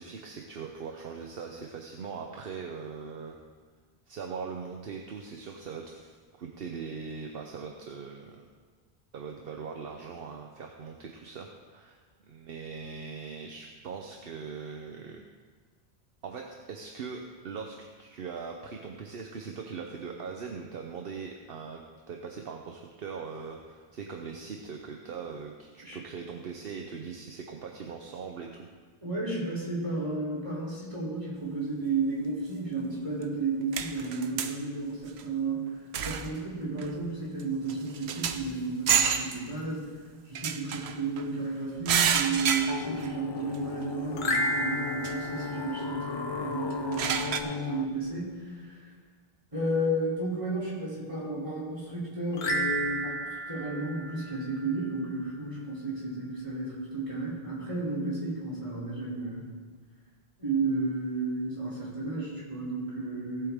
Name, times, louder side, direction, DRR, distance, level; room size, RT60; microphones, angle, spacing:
voice 1, 0.0-3.4 4.1-8.5 9.1-12.0 12.2-15.2 16.2-21.8 22.1-28.7, right 5 dB, 65° right, 2 dB, 1.0 m, -40 dB
voice 2, 29.0-39.9 40.3-48.8 49.5-53.2 53.5-59.5 60.4-63.5, right 2 dB, 30° right, -7 dB, 3.4 m, -32 dB
sound 1, 33.2-33.3 33.7-34.6 35.1-35.2 35.9-36.4 36.8-37.0 37.4-37.5 37.7-38.5 38.9-39.4 40.3-41.2 41.9-43.1 43.5-43.6 45.0-45.1 46.7-47.4, right 7 dB, 90° right, 1.0 m, -29 dB
sound 2, 42.7-47.9, left 5 dB, 35° left, 0.4 m, -36 dB
sound 3, 44.1-46.6 52.3-55.0, right 1 dB, 80° left, 1.3 m, -33 dB
17.5 x 7.9 x 3.6 m, 1.5 s
omnidirectional pair, 1.0 m